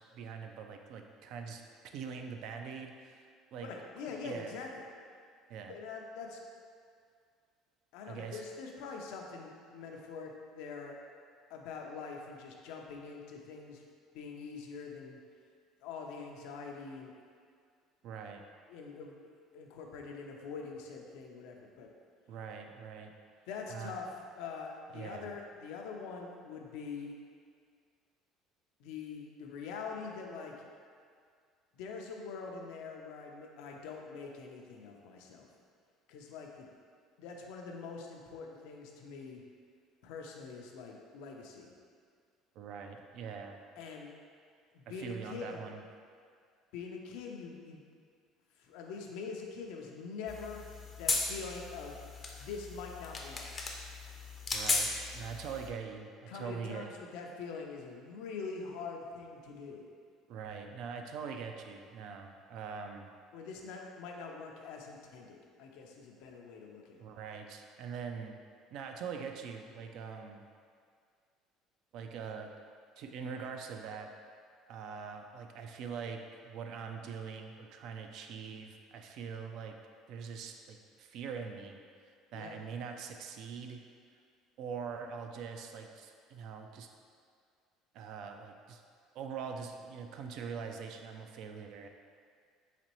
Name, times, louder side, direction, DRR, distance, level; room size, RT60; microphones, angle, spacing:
voice 1, 0.1-1.6 1.9-3.7 4.1-4.5 5.5-5.8 8.1-8.4 18.0-18.4 22.3-23.1 23.7-23.9 24.9-25.3 42.6-43.6 44.9-45.8 54.5-56.9 60.3-63.1 67.0-68.4 68.7-70.4 71.9-72.5 73.0-74.1 74.7-79.7 80.1-81.8 82.3-83.8 84.6-86.9 87.9-88.8 89.1-91.9, right 6 dB, 65° right, 4 dB, 0.3 m, -43 dB
voice 2, 3.6-4.9 5.7-6.4 7.9-11.0 11.5-13.8 14.1-15.2 15.8-17.1 18.7-21.9 23.5-24.1 24.4-27.1 28.8-30.5 31.8-35.5 36.1-36.7 37.2-39.4 40.0-41.7 43.8-44.1 44.7-45.6 46.7-47.8 48.6-50.6 51.0-51.9 52.4-53.4 56.3-59.9 63.3-67.0 82.3-82.6, left 5 dB, 80° left, 1 dB, 0.5 m, -44 dB
sound 1, 50.3-55.7, left 3 dB, 25° left, 0.4 m, -36 dB
4.1 x 3.0 x 2.9 m, 2.1 s
cardioid pair, 115°, 0 cm